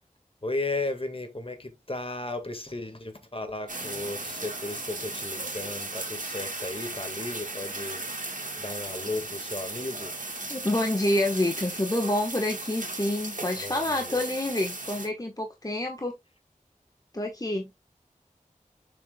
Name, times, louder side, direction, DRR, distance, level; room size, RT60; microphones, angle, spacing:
voice 1, 0.4-8.0 8.6-10.1 13.6-14.2, left 2 dB, 40° left, 1.7 m, -35 dB
sound 1, 3.7-15.1, right 2 dB, 70° right, 2.2 m, -36 dB
voice 2, 10.5-16.1 17.1-17.7, left 1 dB, 25° left, 1.2 m, -28 dB
6.9 x 6.0 x 2.2 m
wide cardioid pair, 45°, 14 cm